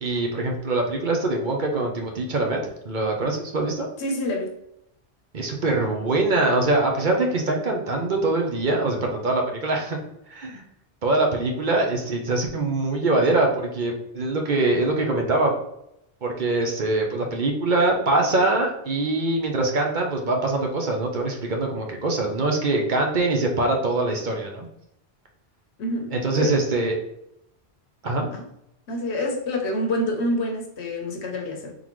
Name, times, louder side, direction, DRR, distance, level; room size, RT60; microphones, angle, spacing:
voice 1, 0.0-2.6 2.8-3.9 5.3-10.6 11.0-15.5 16.2-24.7 26.1-26.9 28.0-28.3, right 2 dB, 50° right, 0.8 m, -23 dB
voice 2, 4.0-4.5 25.8-26.6 28.3-28.5 28.9-31.7, left 1 dB, 80° left, 1.1 m, -27 dB
3.9 x 3.7 x 3.0 m
omnidirectional pair, 1.1 m